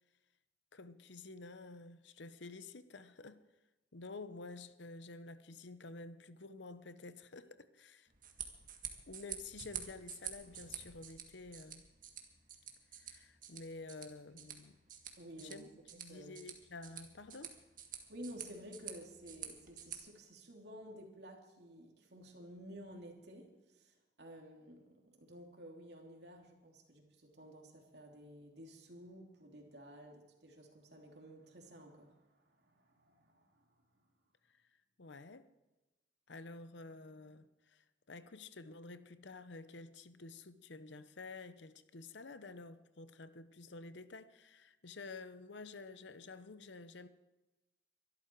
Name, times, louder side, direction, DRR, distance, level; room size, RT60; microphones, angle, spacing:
voice 1, 0.7-3.4 3.9-8.1 9.1-11.8 12.9-14.8 15.4-15.7 15.9-17.6 34.5-34.6 35.0-35.5 36.3-47.1, left 3 dB, 70° left, 0.8 m, -50 dB
sound 1, 8.1-20.0, right 9 dB, 45° right, 1.8 m, -49 dB
voice 2, 15.2-15.6 16.1-16.4 18.1-33.6, equal, 60° right, 2.9 m, -53 dB
23.5 x 12.5 x 4.6 m
head